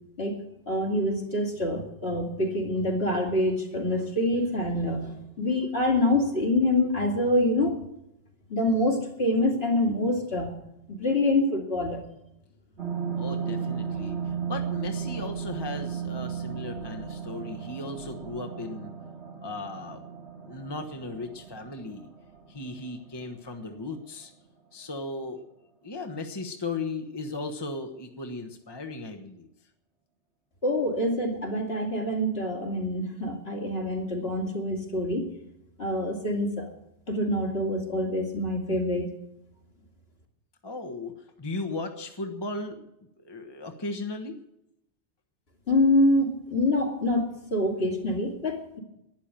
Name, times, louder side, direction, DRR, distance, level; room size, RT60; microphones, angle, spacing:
voice 1, 0.7-7.8 8.5-10.6 10.9-12.0 30.6-35.3 35.8-36.7 37.1-39.1 45.7-48.8, left 1 dB, 60° left, 0 dB, 3.0 m, -26 dB
sound 1, 12.8-23.6 24.0-24.1, right 7 dB, 65° right, 2.2 m, -35 dB
voice 2, 13.2-18.9 19.4-20.0 20.5-22.1 22.5-24.3 24.7-25.4 25.8-29.5 40.6-42.8 43.2-44.4, left 3 dB, 20° left, 5 dB, 1.2 m, -36 dB
12.0 x 10.0 x 9.0 m, 0.81 s
omnidirectional pair, 1.2 m